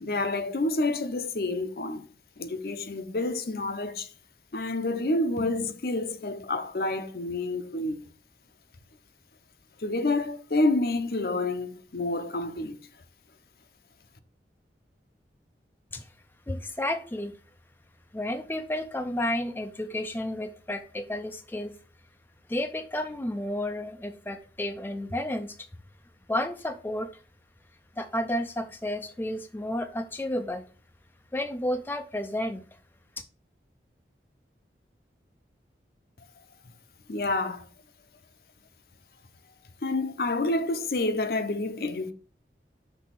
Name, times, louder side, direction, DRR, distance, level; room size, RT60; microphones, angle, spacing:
voice 1, 0.0-2.1 2.4-4.1 4.5-8.0 9.8-12.8 37.1-37.7 39.8-42.1, left 2 dB, 55° left, 0.6 m, -28 dB
voice 2, 16.5-17.4 18.1-21.7 22.5-25.7 26.3-27.2 28.0-30.6 31.3-32.6, left 1 dB, 10° left, 0.4 m, -31 dB
6.1 x 3.4 x 5.9 m
head